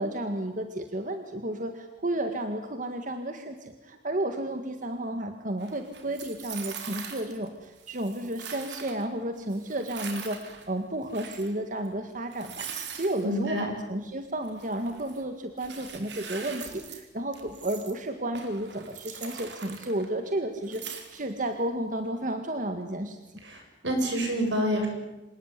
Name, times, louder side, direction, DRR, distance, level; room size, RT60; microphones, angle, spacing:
voice 1, 0.0-23.2, right 1 dB, 45° right, 6 dB, 1.9 m, -32 dB
sound 1, 5.6-7.5 7.8-9.0 9.5-10.7 11.0-11.5 11.8-11.9 12.3-13.3 14.4-15.2 15.6-17.0 17.3-18.0 18.3-20.3 20.6-21.5, right 7 dB, 70° right, 3.9 m, -42 dB
voice 2, 13.2-13.7 23.4-24.9, equal, 85° right, 3 dB, 7.7 m, -28 dB
26.5 x 19.0 x 9.8 m, 1.0 s
head